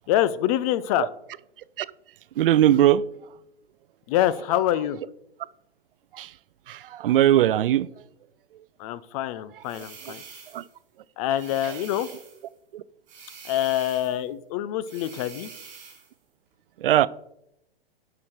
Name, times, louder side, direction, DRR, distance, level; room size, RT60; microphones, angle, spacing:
voice 1, 0.1-1.1 4.1-5.0 8.8-10.2 11.2-12.1 13.4-15.5, left 12 dB, 35° left, 0.6 m, -25 dB
voice 2, 2.4-3.0 6.1-6.3 6.7-7.9 9.7-10.1 10.5-10.6 11.6-11.8 12.7-12.8 16.8-17.1, right 12 dB, 65° right, 0.5 m, -21 dB
sound 1, 9.6-10.7 11.3-12.5 13.1-14.2 14.8-16.1, right 6 dB, 25° right, 3.9 m, -45 dB
11.5 x 5.9 x 4.6 m
hypercardioid pair, 120°, 30 cm